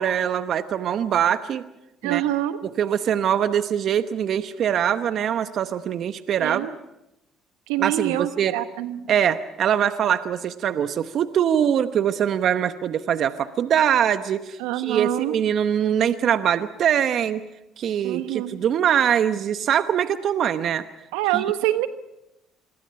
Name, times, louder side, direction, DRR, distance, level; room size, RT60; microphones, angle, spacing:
voice 1, 0.0-1.6 2.0-2.2 2.6-6.7 7.8-8.6 9.1-17.4 17.8-20.8 21.3-21.4, right 9 dB, 60° right, 11 dB, 1.0 m, -23 dB
voice 2, 2.0-2.6 6.4-6.7 7.7-9.1 14.6-15.4 18.0-18.6 21.1-21.9, right 14 dB, 85° right, 10 dB, 1.3 m, -25 dB
28.0 x 22.5 x 5.8 m, 0.90 s
supercardioid pair, 65°, 0 cm